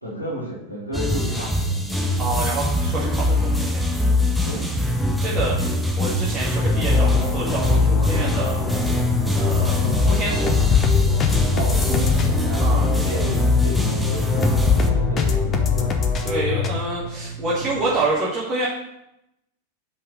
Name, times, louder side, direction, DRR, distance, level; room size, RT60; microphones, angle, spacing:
voice 1, 0.0-1.7 4.4-4.7 9.8-10.2 11.5-16.0 17.2-17.3, equal, 90° left, -6 dB, 2.2 m, -32 dB
sound 1, 0.9-14.9, left 1 dB, ahead, 0.9 m, -22 dB
voice 2, 2.2-3.8 5.2-5.5 6.0-8.6 9.3-10.7 12.6-12.8 16.3-18.7, right 2 dB, 20° right, -8 dB, 2.0 m, -27 dB
sound 2, 5.3-18.0, right 3 dB, 50° left, 2.1 m, -33 dB
sound 3, 6.5-16.7, left 6 dB, 25° left, 0.9 m, -23 dB
5.7 x 5.5 x 6.4 m, 0.84 s
figure-of-eight pair, 90°, 0 cm